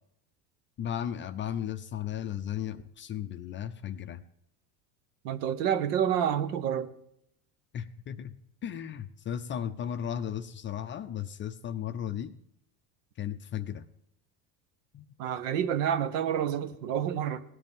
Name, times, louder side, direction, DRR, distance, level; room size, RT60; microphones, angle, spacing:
voice 1, 0.8-4.2 7.7-8.3 8.6-12.4 13.2-13.9 14.9-15.1, left 9 dB, 25° left, 0.4 m, -35 dB
voice 2, 5.2-6.9 15.2-17.4, right 9 dB, 75° right, 1.1 m, -28 dB
17.5 x 10.5 x 3.6 m
supercardioid pair, 120°, 47 cm